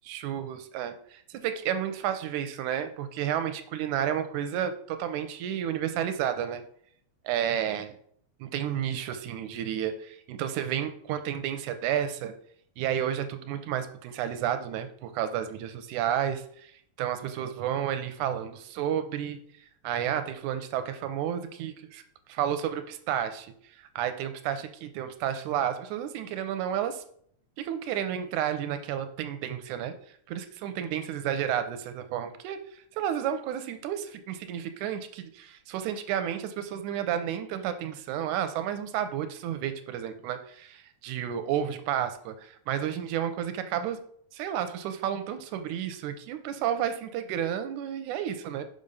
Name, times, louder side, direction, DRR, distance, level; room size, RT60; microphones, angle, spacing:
voice 1, 0.1-6.6 7.3-8.0 8.4-12.3 12.8-16.7 17.0-19.4 19.8-22.0 22.3-23.5 24.0-27.0 27.6-29.9 30.3-32.6 32.9-44.0 44.3-48.6, right 10 dB, 90° right, 9 dB, 2.1 m, -31 dB
5.4 x 5.2 x 5.4 m, 0.63 s
omnidirectional pair, 3.4 m